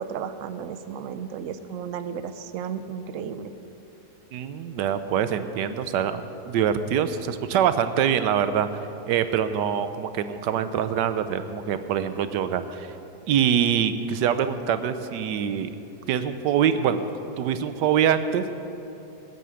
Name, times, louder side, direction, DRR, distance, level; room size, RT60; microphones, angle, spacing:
voice 1, 0.0-3.5, right 7 dB, 60° right, 11 dB, 0.9 m, -34 dB
voice 2, 4.3-8.7 9.1-12.9 13.3-15.7 16.1-17.0 17.4-18.5, right 8 dB, 90° right, 11 dB, 1.3 m, -24 dB
15.5 x 9.3 x 6.9 m, 2.9 s
omnidirectional pair, 1.8 m